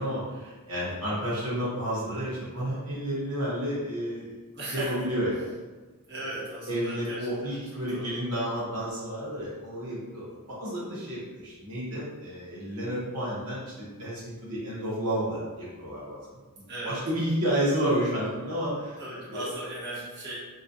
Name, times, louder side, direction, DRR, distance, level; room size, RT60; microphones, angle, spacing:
voice 1, 0.0-4.4 4.7-5.5 6.3-16.4 16.8-19.0 19.3-19.5, equal, 80° right, -8 dB, 1.0 m, -31 dB
voice 2, 4.5-5.1 6.1-7.6 7.9-8.2 16.7-17.0 19.0-20.4, right 1 dB, 50° right, -7 dB, 1.2 m, -37 dB
3.9 x 2.4 x 2.6 m, 1.3 s
head